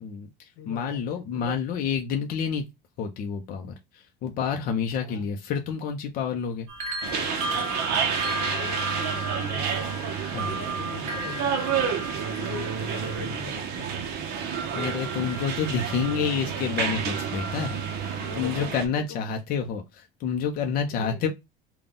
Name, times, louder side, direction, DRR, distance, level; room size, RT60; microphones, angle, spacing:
voice 1, 0.0-2.7 3.0-6.7 10.3-10.5 14.7-21.3, left 6 dB, 45° left, 0.6 m, -29 dB
voice 2, 0.5-1.0 1.3-1.6 5.0-5.3 8.3-9.8 10.3-14.1 18.1-19.3 20.5-21.2, left 6 dB, 75° left, 1.1 m, -42 dB
sound 1, 6.7-16.7 17.1-18.3, right 1 dB, 30° right, 1.0 m, -36 dB
sound 2, 7.0-18.9, right 7 dB, 50° right, 0.8 m, -30 dB
3.9 x 2.3 x 3.5 m
cardioid pair, 170°, 21 cm